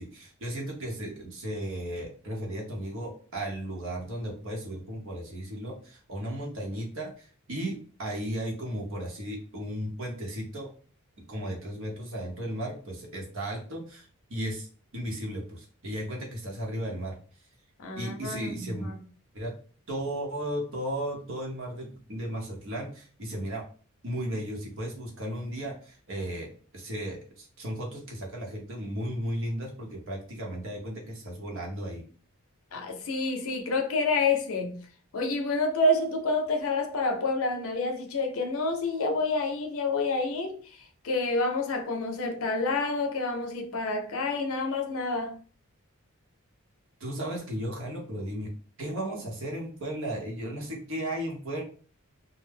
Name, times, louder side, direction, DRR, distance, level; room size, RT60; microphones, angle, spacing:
voice 1, 0.0-10.7 11.2-14.7 14.9-17.2 18.0-18.9 19.3-19.5 19.9-23.6 24.0-26.5 26.7-32.0 47.0-48.5 48.8-51.6, right 1 dB, 60° right, 0.8 m, -35 dB
voice 2, 17.8-19.0 32.7-34.8 35.1-40.6 41.0-45.4, left 3 dB, 65° left, 0.5 m, -28 dB
2.3 x 2.0 x 3.3 m
head